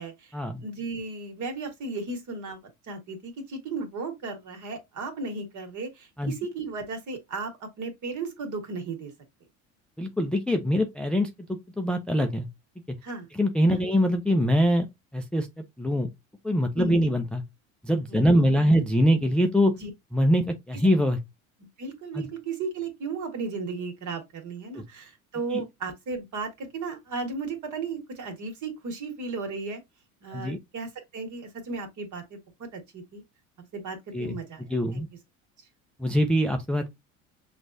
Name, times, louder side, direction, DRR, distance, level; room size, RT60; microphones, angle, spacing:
voice 1, 0.0-2.6 2.9-9.1 13.0-13.3 13.7-13.8 16.7-17.0 18.1-18.7 19.8-19.9 21.8-29.8 30.2-33.2 33.7-35.0, right 4 dB, 45° right, 1.8 m, -35 dB
voice 2, 10.0-11.3 11.8-12.5 13.3-14.9 15.1-15.5 15.8-16.1 16.4-17.4 17.8-19.7 20.1-21.2 22.1-22.3 24.7-24.8 25.5-25.6 30.3-30.6 34.1-34.4 34.7-35.1 36.0-36.9, equal, ahead, 0.5 m, -23 dB
6.0 x 2.5 x 2.6 m
hypercardioid pair, 80°, 41 cm